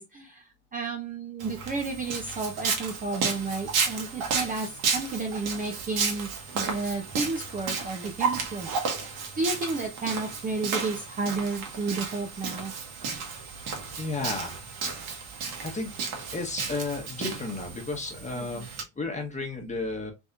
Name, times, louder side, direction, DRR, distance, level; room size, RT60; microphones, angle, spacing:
voice 1, 0.0-6.3 6.5-8.7 9.4-12.7 18.3-18.7, right 3 dB, 20° right, 2 dB, 0.6 m, -32 dB
Walk footsteps, 1.4-18.8, right 5 dB, 55° right, 1.4 m, -33 dB
voice 2, 14.0-14.6 15.6-15.9 16.3-18.7 19.0-20.1, left 3 dB, 15° left, 2 dB, 1.3 m, -33 dB
3.6 x 3.1 x 2.6 m, 0.22 s
supercardioid pair, 100°, 45 cm